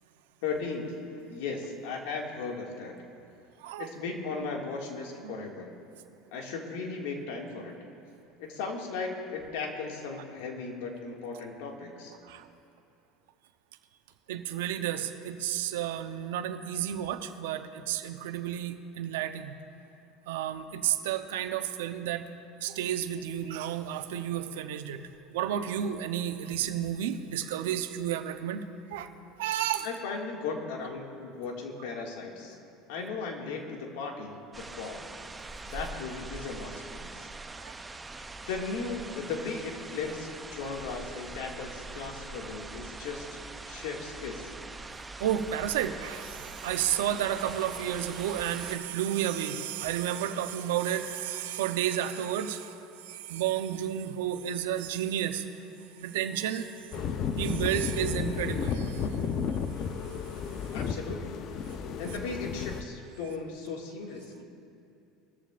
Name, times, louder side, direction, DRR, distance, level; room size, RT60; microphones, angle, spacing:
voice 1, 0.4-0.9 1.3-2.9 3.8-5.7 6.3-7.8 8.4-12.1 29.8-32.6 32.9-35.1 35.7-37.3 38.5-44.5 60.7-61.5 62.0-64.4, left 4 dB, 80° left, 0 dB, 2.1 m, -37 dB
voice 2, 14.3-19.5 20.3-22.2 22.6-25.0 25.3-28.6 28.9-29.1 29.4-29.9 37.6-37.7 45.2-52.8 53.0-55.5 56.0-56.7 57.4-59.1, right 10 dB, 85° right, 8 dB, 0.8 m, -31 dB
sound 1, 34.5-48.8, right 3 dB, 15° right, 0.6 m, -43 dB
sound 2, 56.9-62.8, left 6 dB, 50° left, 0.7 m, -33 dB
20.5 x 14.0 x 2.5 m, 2.7 s
supercardioid pair, 110°, 0 cm